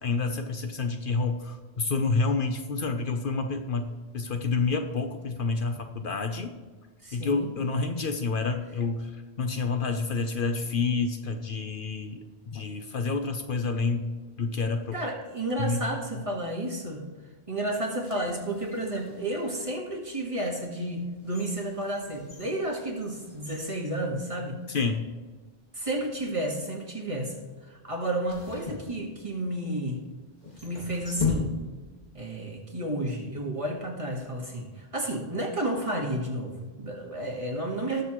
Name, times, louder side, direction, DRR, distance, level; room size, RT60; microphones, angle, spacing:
voice 1, 0.0-6.6 7.1-15.0 15.6-15.8 24.7-25.1, left 4 dB, 60° left, 6 dB, 0.9 m, -29 dB
voice 2, 7.0-7.5 14.9-17.0 17.5-24.6 25.7-27.3 27.6-30.0 30.6-31.6 32.1-38.0, right 1 dB, 30° right, 0 dB, 1.7 m, -31 dB
sound 1, 17.8-19.6 20.2-20.3 20.9-24.7 24.9-25.0 25.9-26.3 28.2-29.6 30.4-32.2, left 4 dB, 45° left, 1.9 m, -37 dB
19.0 x 6.6 x 3.1 m, 1.4 s
omnidirectional pair, 1.0 m